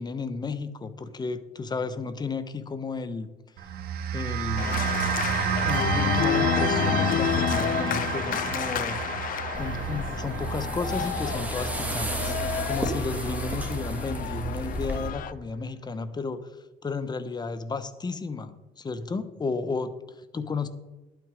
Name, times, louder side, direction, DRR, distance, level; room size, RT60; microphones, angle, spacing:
voice 1, 0.0-3.3 4.1-4.9 5.6-9.2 9.6-12.4 12.6-16.5 16.8-20.7, left 4 dB, 25° left, 11 dB, 1.0 m, -33 dB
sound 1, 3.6-14.1, right 8 dB, 70° right, 1.2 m, -31 dB
Organ, 4.6-15.3, left 10 dB, 55° left, 0.6 m, -30 dB
sound 2, 9.5-15.1, right 2 dB, 10° right, 2.0 m, -32 dB
11.5 x 9.3 x 5.0 m, 1.1 s
cardioid pair, 110°, 17 cm